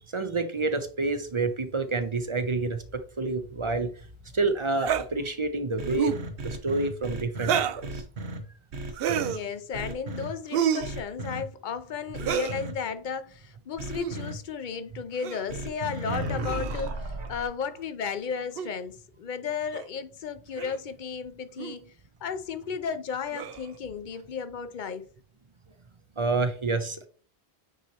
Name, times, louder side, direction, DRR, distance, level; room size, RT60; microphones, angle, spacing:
voice 1, 0.1-3.9 4.3-6.1 6.4-8.0 26.2-27.1, right 3 dB, 35° right, 0.6 m, -28 dB
sound 1, 4.8-5.1 5.9-6.2 7.4-7.8 8.9-9.4 10.5-10.9 12.2-12.6 13.9-14.1 15.2-15.5 16.4-16.9 18.6-18.7 19.7-19.9 20.6-20.8 21.6-21.8 23.3-23.7, right 9 dB, 70° right, 0.7 m, -29 dB
sound 2, 5.8-8.4 8.7-9.3 9.7-10.3 10.8-11.4 12.1-12.7 13.8-14.3 15.5-17.5, right 2 dB, 85° right, 1.2 m, -35 dB
voice 2, 9.2-21.9 22.2-25.1, left 6 dB, 55° left, 0.7 m, -34 dB
9.1 x 4.3 x 2.9 m
omnidirectional pair, 1.1 m